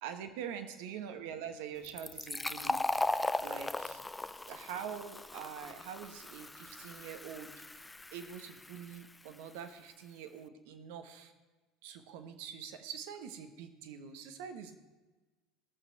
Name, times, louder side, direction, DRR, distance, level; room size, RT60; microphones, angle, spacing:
voice 1, 0.0-2.8 3.4-4.0 4.5-11.3 11.8-14.8, right 8 dB, 70° right, 8 dB, 1.2 m, -45 dB
Fill (with liquid), 1.8-9.2, left 2 dB, 10° left, 0.4 m, -38 dB
17.5 x 7.0 x 4.6 m, 1.2 s
hypercardioid pair, 75°, 0 cm